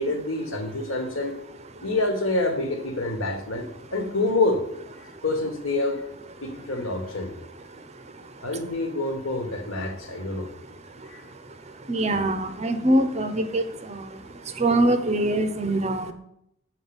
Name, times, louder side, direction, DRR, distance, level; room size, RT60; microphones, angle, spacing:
voice 1, 0.0-1.4 1.8-3.7 3.9-4.6 5.2-6.0 6.4-7.3 8.4-10.5 11.1-11.2, left 2 dB, 60° left, 5 dB, 1.5 m, -27 dB
voice 2, 11.9-13.6 13.9-14.0 14.6-16.1, right 1 dB, 30° right, 9 dB, 0.6 m, -23 dB
7.9 x 4.6 x 7.1 m, 0.77 s
head